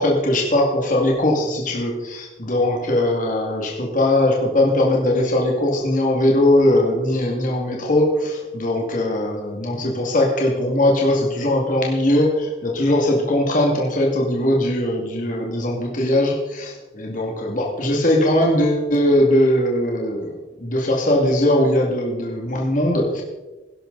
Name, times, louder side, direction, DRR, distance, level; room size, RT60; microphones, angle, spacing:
voice 1, 0.0-23.2, left 1 dB, 45° left, -1 dB, 2.2 m, -20 dB
18.5 x 11.0 x 4.0 m, 1.1 s
head